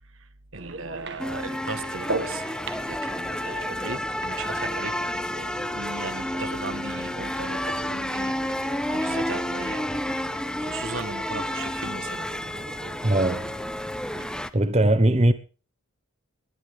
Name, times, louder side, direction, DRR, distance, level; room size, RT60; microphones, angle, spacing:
voice 1, 0.1-2.6 2.9-4.9 5.7-10.0 10.6-12.3, right 3 dB, 70° right, 1.5 m, -38 dB
sound 1, 0.5-14.5, right 2 dB, 55° right, 1.8 m, -39 dB
sound 2, 1.2-14.5, left 1 dB, 5° left, 0.7 m, -30 dB
voice 2, 13.0-13.5 14.5-15.3, right 1 dB, 30° right, 1.0 m, -20 dB
20.5 x 11.5 x 3.6 m
head